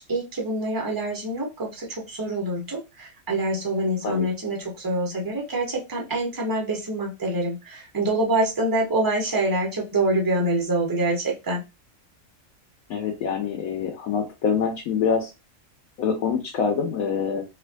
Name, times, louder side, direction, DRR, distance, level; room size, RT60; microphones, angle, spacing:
voice 1, 0.0-11.6, right 1 dB, 15° right, -1 dB, 0.9 m, -26 dB
voice 2, 12.9-15.3 16.0-17.4, left 6 dB, 85° left, 1 dB, 1.3 m, -25 dB
3.5 x 2.9 x 2.6 m, 0.25 s
omnidirectional pair, 1.4 m